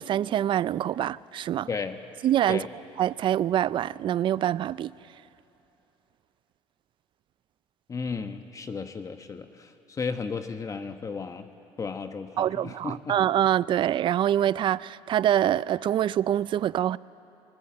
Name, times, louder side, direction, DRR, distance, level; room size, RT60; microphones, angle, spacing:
voice 1, 0.0-1.7 2.2-2.7 3.0-4.9 12.4-17.0, right 11 dB, 50° right, 0.4 m, -25 dB
voice 2, 1.7-2.0 2.5-2.7 7.9-11.5 11.8-13.2, left 5 dB, 30° left, 1.1 m, -34 dB
23.5 x 19.5 x 8.7 m
supercardioid pair, 95°, 11 cm